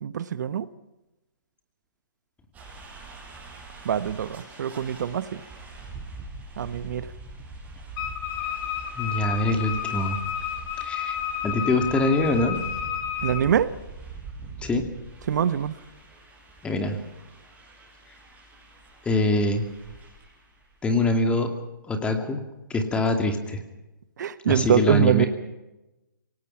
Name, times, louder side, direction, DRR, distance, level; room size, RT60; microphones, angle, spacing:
voice 1, 0.0-0.7 3.8-5.4 6.6-7.1 13.2-13.7 15.3-15.7 24.2-25.3, right 8 dB, 60° right, 14 dB, 1.0 m, -24 dB
sound 1, 2.5-20.9, right 3 dB, 15° right, 6.7 m, -43 dB
Wind instrument woodwind instrument, 8.0-13.5, left 9 dB, 30° left, 3.1 m, -31 dB
voice 2, 9.0-10.2 10.8-11.2 11.4-12.6 14.6-14.8 16.6-17.0 19.1-19.6 20.8-21.5 21.9-22.4 22.7-23.6 24.5-25.3, left 2 dB, 10° left, 5 dB, 2.6 m, -24 dB
27.5 x 18.5 x 5.8 m, 0.99 s
hypercardioid pair, 145°, 11 cm